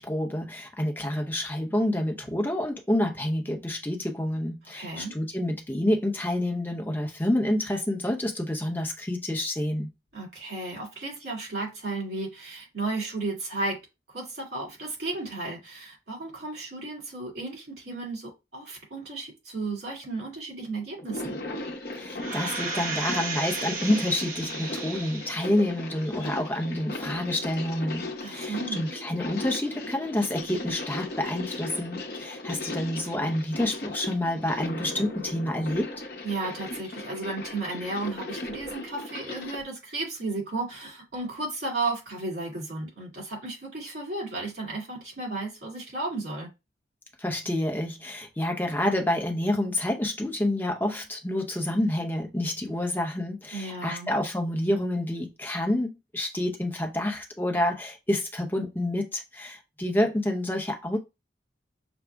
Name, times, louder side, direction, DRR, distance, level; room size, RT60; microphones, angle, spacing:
voice 1, 0.0-9.9 22.0-35.9 47.2-61.0, left 1 dB, 10° left, 0.7 m, -28 dB
voice 2, 4.7-5.1 10.1-13.8 14.1-21.4 28.2-28.8 36.2-46.5 53.5-54.1, right 3 dB, 65° right, 2.5 m, -34 dB
sound 1, 21.0-39.6, left 2 dB, 55° left, 0.8 m, -37 dB
sound 2, 22.2-25.6 26.0-26.1, right 4 dB, 50° right, 1.0 m, -34 dB
6.0 x 2.0 x 3.4 m
head